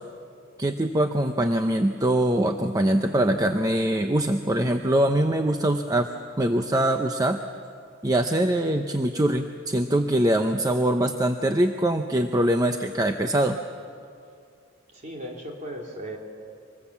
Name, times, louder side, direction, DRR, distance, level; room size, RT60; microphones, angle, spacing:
voice 1, 0.6-6.1 6.4-7.4 8.0-13.6, right 1 dB, 20° right, 5 dB, 0.7 m, -23 dB
voice 2, 14.9-16.2, right 1 dB, 40° right, 0 dB, 3.2 m, -36 dB
25.5 x 20.5 x 7.3 m, 2.3 s
head